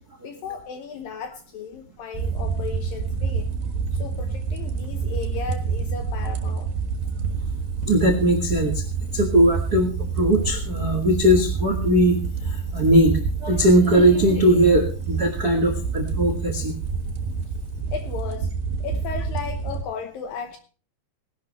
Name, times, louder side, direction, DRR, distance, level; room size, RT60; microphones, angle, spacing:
voice 1, 0.2-3.5 3.9-6.7 17.9-18.5 18.8-20.6, left 6 dB, 70° left, 6 dB, 2.5 m, -35 dB
sound 1, 2.1-19.8, right 5 dB, 65° right, 3.1 m, -28 dB
voice 2, 7.9-8.8 9.1-9.9 10.2-12.2 12.4-16.7, right 1 dB, 85° right, 5 dB, 0.8 m, -19 dB
19.0 x 11.5 x 3.1 m, 0.37 s
omnidirectional pair, 4.7 m